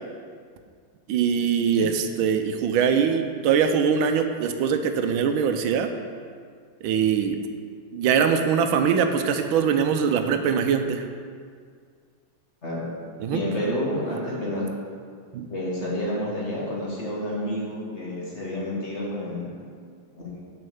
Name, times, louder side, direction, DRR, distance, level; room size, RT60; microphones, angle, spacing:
voice 1, 1.1-5.9 6.8-7.4 7.9-11.0 13.2-13.4 15.3-15.5, right 7 dB, 85° right, 7 dB, 1.4 m, -22 dB
voice 2, 13.3-14.6 15.5-19.5 20.2-20.4, left 1 dB, 35° left, -5 dB, 1.8 m, -29 dB
6.6 x 5.5 x 6.9 m, 2.1 s
omnidirectional pair, 2.2 m